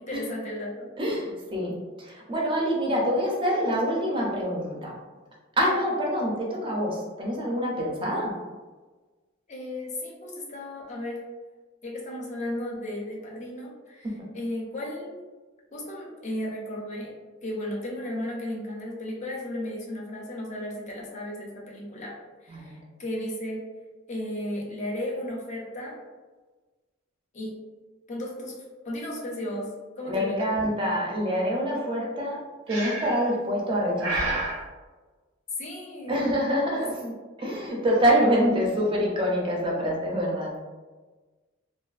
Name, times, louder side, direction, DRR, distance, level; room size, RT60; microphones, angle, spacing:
voice 1, 0.0-0.9 9.5-11.2 11.8-15.2 15.7-22.1 22.4-23.7 24.1-26.0 27.3-27.6 28.1-28.6 28.8-30.6 35.6-36.2 36.8-37.1, left 1 dB, 35° left, -2 dB, 0.5 m, -35 dB
voice 2, 1.0-1.7 2.0-4.9 5.6-8.3 14.0-14.2 22.5-22.8 30.1-32.4 32.7-34.4 36.1-36.9 37.4-40.7, equal, 25° right, -3 dB, 0.5 m, -26 dB
Breathing, 32.7-33.3 34.0-34.6, right 2 dB, 80° right, 0.7 m, -29 dB
2.4 x 2.4 x 2.3 m, 1.3 s
head